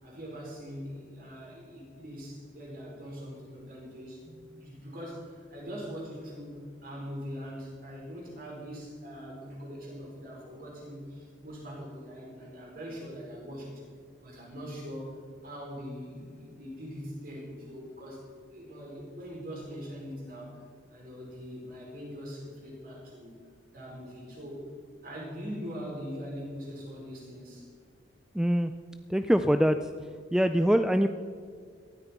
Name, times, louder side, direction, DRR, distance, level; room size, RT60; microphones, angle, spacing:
voice 1, 0.0-13.8 14.2-15.2 15.4-18.2 18.5-20.6 20.9-23.4 23.7-24.7 25.0-27.7, equal, 50° right, -3 dB, 4.8 m, -42 dB
voice 2, 28.3-28.7 29.1-29.9 30.3-31.1, equal, 5° right, 8 dB, 0.3 m, -23 dB
18.0 x 13.0 x 4.5 m, 2.2 s
head